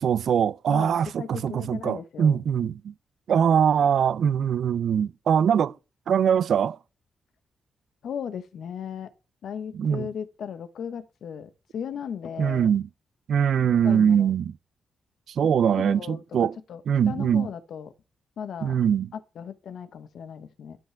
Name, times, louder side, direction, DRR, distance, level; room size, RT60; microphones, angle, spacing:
voice 1, 0.0-2.9 3.3-5.8 6.1-6.8 9.7-10.1 12.4-12.9 13.3-14.6 15.3-16.6 16.9-17.5 18.6-19.1, right 8 dB, 70° right, 0.4 m, -22 dB
voice 2, 0.7-2.4 8.0-9.1 9.4-12.7 13.7-14.3 15.6-17.9 18.4-18.8 19.1-20.8, left 7 dB, 75° left, 0.9 m, -37 dB
11.5 x 5.7 x 3.4 m
cardioid pair, 75°, 0 cm